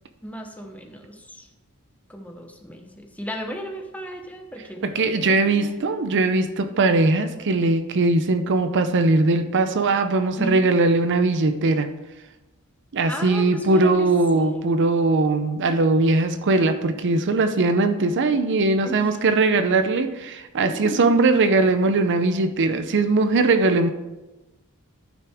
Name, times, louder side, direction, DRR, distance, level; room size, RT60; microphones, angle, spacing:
voice 1, 0.2-1.5 2.1-6.1 10.4-10.7 13.1-14.7 18.8-19.2 20.6-21.2, equal, 5° left, 3 dB, 0.9 m, -35 dB
voice 2, 4.8-11.9 12.9-23.9, right 3 dB, 55° right, 9 dB, 0.5 m, -20 dB
14.0 x 5.9 x 3.5 m, 1.1 s
head